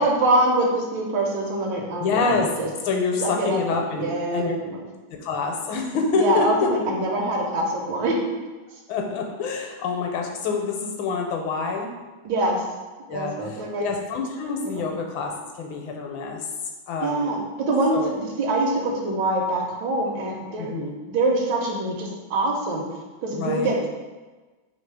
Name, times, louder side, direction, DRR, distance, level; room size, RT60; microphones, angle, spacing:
voice 1, 0.0-2.7 3.2-4.8 6.2-8.1 12.2-12.6 13.1-13.9 14.6-14.9 17.0-18.0 18.4-20.8 21.1-22.8 23.2-23.9, right 2 dB, 75° right, -1 dB, 1.3 m, -24 dB
voice 2, 2.0-2.5 2.9-4.5 5.2-6.7 8.9-11.9 13.1-15.3 15.6-16.4 16.9-17.4 17.9-18.1 20.6-20.9 23.3-23.7, left 4 dB, 80° left, 2 dB, 1.3 m, -26 dB
3.3 x 2.7 x 4.5 m, 1.2 s
omnidirectional pair, 2.2 m